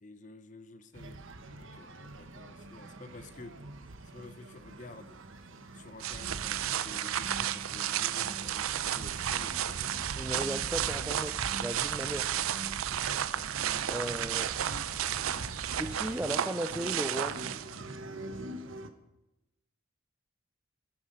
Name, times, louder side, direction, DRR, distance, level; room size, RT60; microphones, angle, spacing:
voice 1, 0.0-1.2 1.5-3.6 4.0-5.2 5.7-10.0 12.1-12.3 13.2-13.5, left 2 dB, 35° left, 12 dB, 0.7 m, -50 dB
sound 1, 0.9-18.9, right 1 dB, 70° right, 1.0 m, -45 dB
sound 2, 6.0-17.9, right 10 dB, 90° right, 0.5 m, -33 dB
sound 3, 9.2-15.7, right 1 dB, 25° right, 0.8 m, -51 dB
voice 2, 10.2-12.3 13.9-14.6 15.7-17.4, right 1 dB, 5° right, 7 dB, 0.3 m, -36 dB
16.0 x 8.9 x 5.3 m, 0.97 s
head